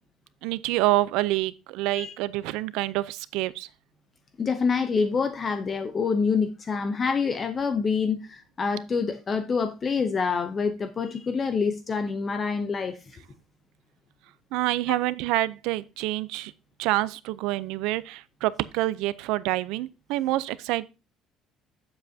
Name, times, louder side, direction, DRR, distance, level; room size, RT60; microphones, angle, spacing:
voice 1, 0.4-3.7 14.5-16.5 16.8-20.9, right 17 dB, 80° right, 0.5 m, -27 dB
voice 2, 4.4-13.2 14.9-15.0, left 5 dB, 25° left, 0.6 m, -26 dB
9.1 x 7.6 x 2.7 m
cardioid pair, 165°, 0 cm